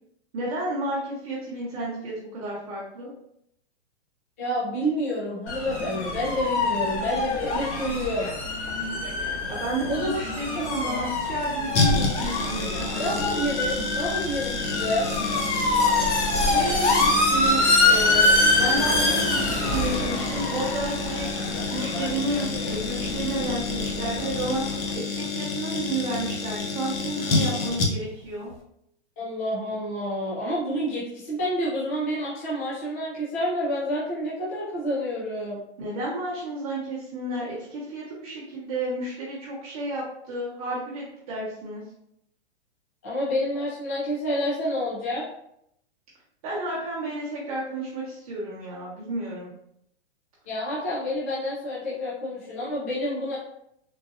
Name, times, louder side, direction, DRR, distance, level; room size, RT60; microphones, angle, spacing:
voice 1, 0.3-3.1 9.5-13.2 16.3-21.3 21.7-24.6 24.9-28.5 35.8-41.8 46.4-49.5, right 2 dB, 30° right, -8 dB, 0.9 m, -31 dB
voice 2, 4.4-8.3 9.9-10.2 10.5-10.6 13.0-15.1 29.2-35.6 43.0-45.2 50.5-53.3, equal, 15° left, -9 dB, 0.4 m, -28 dB
sound 1, 5.5-24.9, left 2 dB, 85° left, 1.2 m, -25 dB
sound 2, 11.7-28.2 28.5-28.6, left 4 dB, 60° left, 0.8 m, -30 dB
3.9 x 2.6 x 2.5 m, 0.75 s
hypercardioid pair, 170°, 34 cm